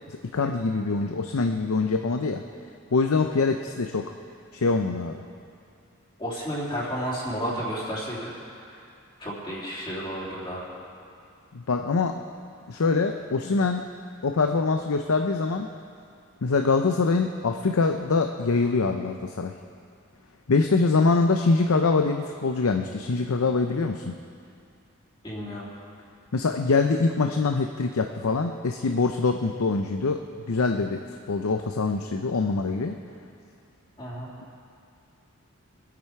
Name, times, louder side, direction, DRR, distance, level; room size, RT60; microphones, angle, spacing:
voice 1, 0.1-2.4 2.9-4.1 4.5-5.2 11.5-12.2 12.7-13.8 14.2-15.7 16.4-19.6 20.5-24.2 26.3-33.0, left 4 dB, 80° left, 5 dB, 0.6 m, -24 dB
voice 2, 6.2-8.3 8.7-8.8 9.2-10.7 25.2-25.7 34.0-34.3, equal, 25° left, -7 dB, 3.1 m, -32 dB
25.0 x 8.7 x 4.8 m, 2.5 s
head